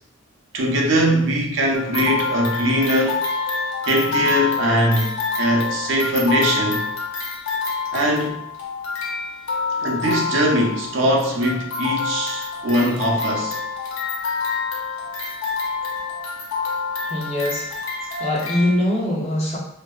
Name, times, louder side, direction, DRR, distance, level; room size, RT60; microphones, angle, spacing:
voice 1, 0.5-3.2 3.8-6.9 7.9-8.4 9.8-13.6, right 1 dB, 65° right, -1 dB, 0.5 m, -21 dB
sound 1, 1.7-18.7, left 5 dB, 80° left, 0.5 m, -27 dB
voice 2, 17.1-19.6, left 1 dB, 30° left, -4 dB, 0.5 m, -23 dB
2.6 x 2.0 x 2.3 m, 0.76 s
head